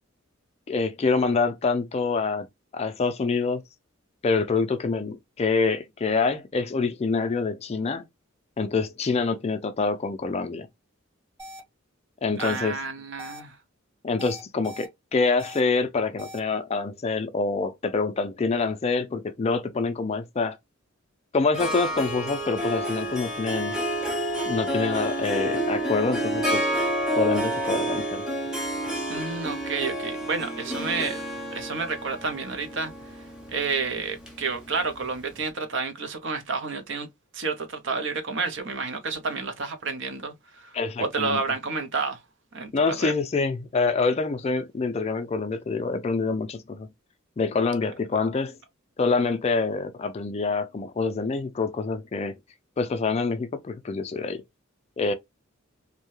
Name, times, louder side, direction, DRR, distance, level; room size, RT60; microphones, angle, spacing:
voice 1, 0.7-2.5 2.7-3.6 4.2-8.0 8.6-10.7 12.2-12.7 14.0-20.6 21.3-23.7 24.5-26.7 27.2-28.2 40.7-41.4 42.7-46.9 47.4-48.6 49.0-52.4 52.8-54.4 55.0-55.1, left 4 dB, 30° left, 0.4 m, -26 dB
sound 1, 11.4-11.6 12.4-12.6 13.2-13.4 14.2-14.9 15.4-15.6 16.2-16.4, equal, 20° right, 1.2 m, -41 dB
voice 2, 12.4-13.6 29.1-31.2 31.5-32.9 33.5-37.1 37.3-42.2 42.5-42.7 43.0-43.1, right 4 dB, 60° right, 0.6 m, -30 dB
Harp, 21.5-35.1, right 1 dB, 5° right, 0.8 m, -29 dB
2.7 x 2.2 x 3.0 m
head